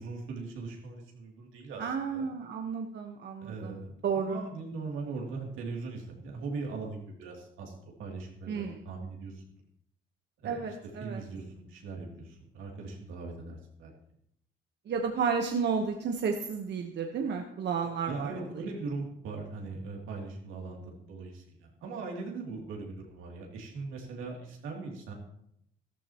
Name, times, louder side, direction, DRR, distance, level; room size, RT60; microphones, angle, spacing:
voice 1, 0.0-1.8 2.1-2.3 3.4-9.4 10.4-10.6 11.0-13.9 18.1-25.1, right 3 dB, 90° right, 0 dB, 2.8 m, -40 dB
voice 2, 1.8-4.4 8.5-8.8 10.4-11.2 14.9-18.5, right 6 dB, 60° right, 3 dB, 1.1 m, -32 dB
13.5 x 13.0 x 3.0 m, 0.73 s
cardioid pair, 90°, 20 cm